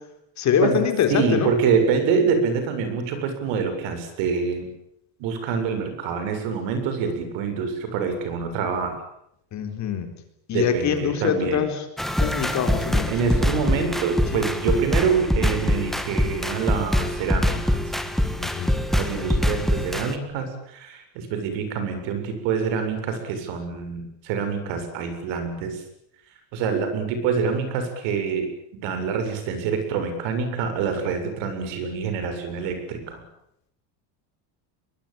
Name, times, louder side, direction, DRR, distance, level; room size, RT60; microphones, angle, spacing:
voice 1, 0.4-1.5 9.5-10.1 10.5-11.8 12.2-13.1 14.3-14.4 18.4-18.8, left 8 dB, 35° left, 7 dB, 4.1 m, -24 dB
voice 2, 1.1-4.7 5.2-9.0 10.5-11.6 13.1-17.8 18.9-25.8 26.5-28.5 28.8-33.2, right 6 dB, 65° right, 8 dB, 7.6 m, -26 dB
sound 1, 12.0-20.1, left 1 dB, ahead, 1.6 m, -24 dB
23.0 x 22.5 x 9.0 m, 0.76 s
cardioid pair, 170°, 48 cm